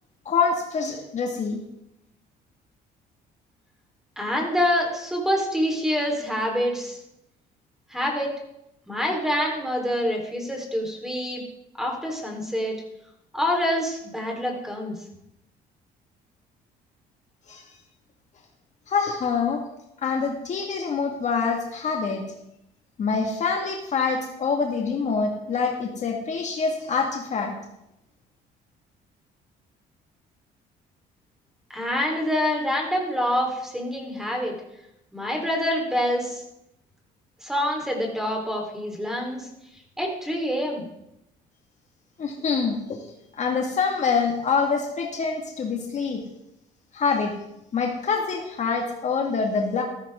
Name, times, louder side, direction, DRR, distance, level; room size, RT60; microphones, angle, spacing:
voice 1, 0.3-1.6 17.5-17.6 18.9-19.6 20.0-22.2 23.0-27.5 42.2-43.0 43.3-46.2 46.9-47.3 47.7-49.8, left 5 dB, 45° left, 2 dB, 2.0 m, -25 dB
voice 2, 4.2-7.0 7.9-8.3 8.9-11.4 11.8-12.7 13.3-15.0 31.7-34.5 35.1-36.4 37.4-39.5 40.0-40.8, equal, 5° right, 1 dB, 4.0 m, -26 dB
14.5 x 13.5 x 3.7 m, 0.82 s
cardioid pair, 110°, 17 cm